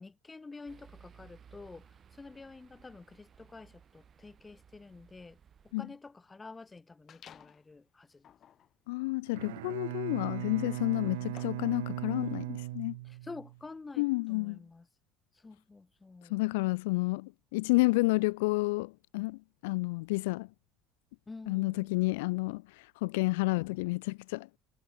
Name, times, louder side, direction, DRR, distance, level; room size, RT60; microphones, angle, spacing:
voice 1, 0.0-1.9 2.2-5.4 5.8-8.3 13.1-14.9 15.4-16.4 21.3-21.9, left 3 dB, 20° left, 2.0 m, -49 dB
sound 1, 0.7-5.7, right 7 dB, 35° right, 6.3 m, -59 dB
sound 2, 7.1-7.7 8.2-11.8, left 9 dB, 45° left, 2.9 m, -57 dB
voice 2, 8.9-13.0 14.0-14.6 16.3-20.5 21.5-24.5, left 24 dB, 85° left, 0.4 m, -30 dB
Bowed string instrument, 9.3-13.6, right 19 dB, 90° right, 0.4 m, -38 dB
supercardioid pair, 95°, 0 cm